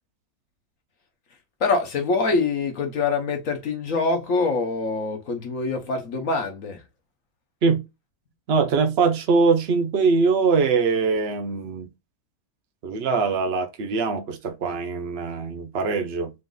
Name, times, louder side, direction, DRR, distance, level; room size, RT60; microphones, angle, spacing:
voice 1, 1.6-6.8, left 3 dB, 60° left, 1.1 m, -24 dB
voice 2, 8.5-11.9 12.8-16.3, right 4 dB, 55° right, 0.8 m, -22 dB
4.0 x 2.5 x 3.7 m
omnidirectional pair, 1.8 m